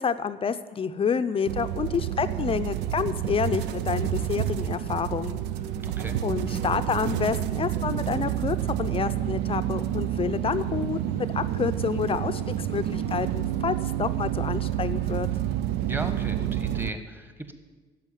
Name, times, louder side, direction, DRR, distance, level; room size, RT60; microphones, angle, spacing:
voice 1, 0.0-5.4 6.2-15.3, left 6 dB, 35° left, 11 dB, 0.5 m, -29 dB
sound 1, 1.4-16.9, right 11 dB, 90° right, 0.6 m, -29 dB
voice 2, 5.8-6.2 15.8-17.5, right 1 dB, 10° right, 8 dB, 1.3 m, -36 dB
10.5 x 7.8 x 9.9 m, 1.4 s
cardioid pair, 110°, 17 cm